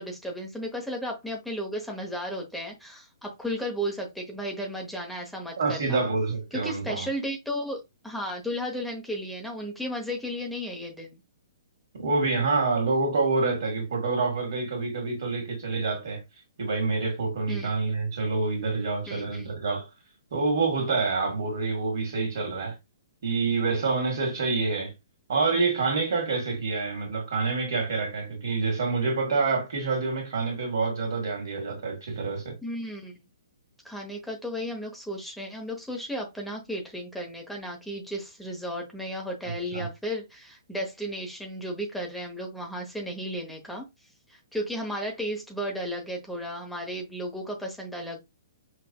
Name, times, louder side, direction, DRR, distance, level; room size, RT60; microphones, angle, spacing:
voice 1, 0.0-6.0 6.5-11.2 17.5-17.7 19.1-19.5 32.6-33.2 33.8-43.8 44.3-48.2, equal, ahead, 0.9 m, -34 dB
voice 2, 5.6-7.1 11.9-16.2 16.6-19.9 20.3-22.8 23.2-24.9 25.3-32.6 39.7-39.9, right 4 dB, 60° right, 1.8 m, -27 dB
5.7 x 2.5 x 2.2 m
figure-of-eight pair, 125°, 2 cm